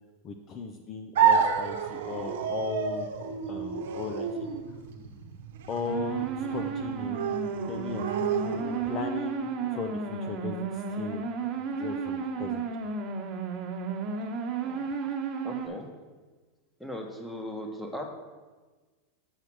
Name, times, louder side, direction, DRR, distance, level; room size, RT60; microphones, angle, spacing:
voice 1, 0.2-3.1 3.5-4.5 5.7-7.2 7.6-8.1 8.8-11.3 11.7-12.6 14.8-14.9, left 5 dB, 30° left, 4 dB, 0.6 m, -37 dB
sound 1, 1.1-9.1, right 7 dB, 75° right, 0.8 m, -30 dB
sound 2, 5.9-15.7, right 5 dB, 35° right, 1.3 m, -33 dB
voice 2, 15.4-15.9 16.8-18.1, left 1 dB, 5° left, 2 dB, 1.1 m, -38 dB
7.3 x 4.9 x 6.2 m, 1.3 s
supercardioid pair, 130°, 0 cm